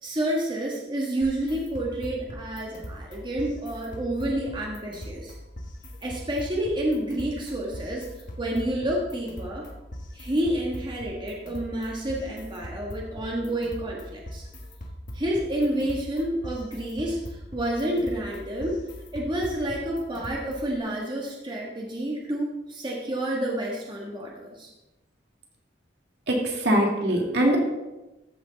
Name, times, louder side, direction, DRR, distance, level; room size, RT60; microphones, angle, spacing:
voice 1, 0.0-5.3 6.0-8.1 8.4-9.6 10.1-14.4 15.1-18.8 19.1-24.7, right 1 dB, 25° right, -2 dB, 1.4 m, -29 dB
sound 1, 1.2-20.8, equal, 45° left, 1.6 m, -41 dB
voice 2, 26.3-27.6, right 1 dB, 65° right, 0 dB, 2.1 m, -22 dB
13.5 x 6.4 x 3.9 m, 1.0 s
head